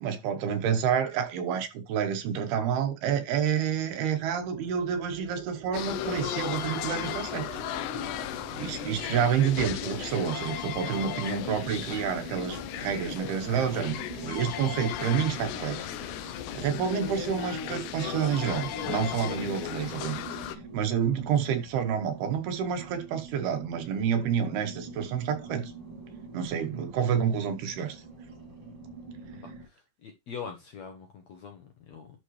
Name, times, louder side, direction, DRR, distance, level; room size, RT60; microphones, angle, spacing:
voice 1, 0.0-7.5 8.0-8.2 8.5-15.9 16.2-25.7 26.3-28.0, right 8 dB, 85° right, 3.2 m, -29 dB
sound 1, 3.5-10.6, right 5 dB, 70° right, 3.8 m, -45 dB
sound 2, 5.7-20.6, left 11 dB, 85° left, 1.8 m, -35 dB
sound 3, 10.8-29.7, right 3 dB, 40° right, 3.1 m, -46 dB
voice 2, 29.7-32.1, left 6 dB, 65° left, 1.7 m, -43 dB
11.0 x 4.6 x 3.2 m
omnidirectional pair, 4.4 m